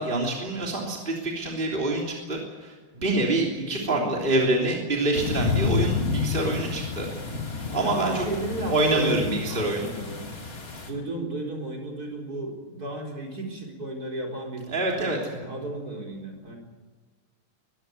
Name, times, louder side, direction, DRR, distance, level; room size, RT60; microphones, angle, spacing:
voice 1, 0.0-7.1 7.7-8.2 8.7-9.9 14.7-15.2, right 2 dB, 25° right, -1 dB, 3.4 m, -26 dB
voice 2, 3.6-4.3 7.8-10.2 10.9-14.7 15.0-16.6, right 1 dB, 45° right, 0 dB, 4.8 m, -34 dB
sound 1, 5.1-10.9, left 4 dB, 40° left, 3.2 m, -30 dB
22.5 x 16.0 x 9.4 m, 1.4 s
omnidirectional pair, 2.3 m